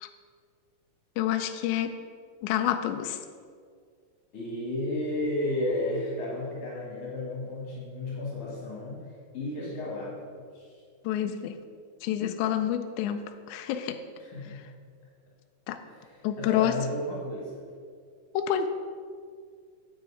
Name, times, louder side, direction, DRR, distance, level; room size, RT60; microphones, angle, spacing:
voice 1, 1.2-2.0 2.4-3.2 11.1-11.6 12.0-14.0 15.7-15.8 16.2-16.8 18.3-18.7, left 10 dB, 80° left, 7 dB, 1.9 m, -28 dB
voice 2, 4.3-10.8 14.2-14.6 15.8-17.6, left 1 dB, 55° left, -5 dB, 2.8 m, -33 dB
9.2 x 8.8 x 4.8 m, 2.1 s
omnidirectional pair, 3.5 m